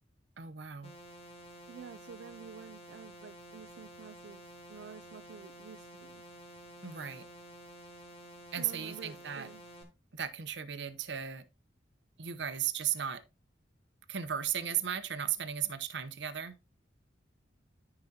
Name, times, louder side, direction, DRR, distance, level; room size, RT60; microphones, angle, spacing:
voice 1, 0.4-0.9 6.8-7.3 8.5-9.5 10.1-11.5 12.2-13.2 14.1-16.5, right 9 dB, 65° right, 0.8 m, -35 dB
sound 1, 0.8-9.8, equal, 35° left, 2.1 m, -51 dB
voice 2, 1.7-6.2 8.6-9.6, right 6 dB, 85° right, 0.4 m, -50 dB
13.5 x 4.9 x 2.8 m
head